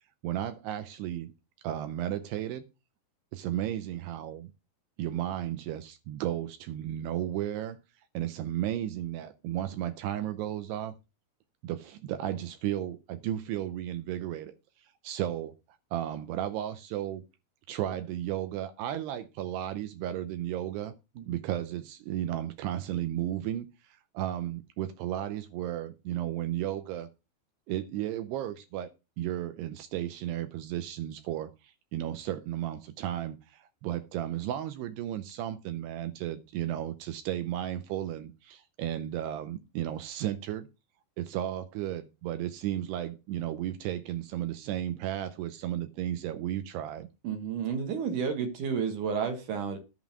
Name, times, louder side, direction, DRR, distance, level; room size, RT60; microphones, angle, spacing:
voice 1, 0.2-1.3 1.6-2.6 3.3-4.5 5.0-7.8 8.1-10.9 11.6-14.5 14.8-15.5 15.9-17.2 17.7-20.9 21.3-27.1 27.7-28.9 29.2-40.7 41.2-47.1, right 12 dB, 80° right, 2.6 m, -34 dB
voice 2, 47.2-49.8, right 6 dB, 60° right, 2.3 m, -31 dB
10.5 x 3.8 x 7.2 m
omnidirectional pair, 5.0 m